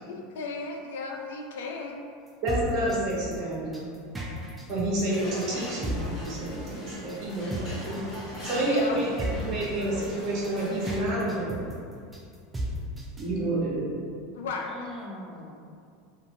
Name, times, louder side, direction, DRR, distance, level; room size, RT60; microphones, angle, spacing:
voice 1, 0.0-2.0 8.3-9.0 14.3-14.7, left 4 dB, 80° left, 1 dB, 0.3 m, -35 dB
sound 1, 2.3-13.3, equal, 15° right, 0.5 m, -35 dB
voice 2, 2.4-3.9 4.7-8.0 8.4-9.1 9.4-11.6 13.2-13.9, right 1 dB, 55° right, -6 dB, 1.0 m, -29 dB
sound 2, 5.1-11.0, equal, 35° left, 1.2 m, -40 dB
voice 3, 8.9-10.0 14.7-15.5, left 1 dB, 15° left, -6 dB, 0.7 m, -42 dB
2.5 x 2.5 x 2.8 m, 2.2 s
hypercardioid pair, 105°, 0 cm